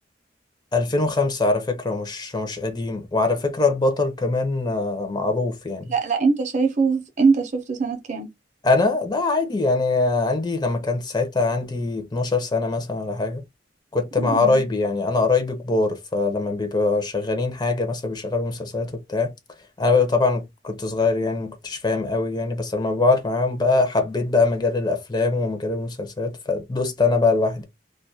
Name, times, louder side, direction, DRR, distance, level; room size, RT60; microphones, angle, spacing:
voice 1, 0.7-5.9 8.6-13.4 13.9-19.3 19.8-27.7, left 3 dB, 25° left, 0.5 m, -23 dB
voice 2, 5.9-8.3 14.2-14.6, right 4 dB, 40° right, 0.5 m, -22 dB
2.3 x 2.1 x 2.6 m
head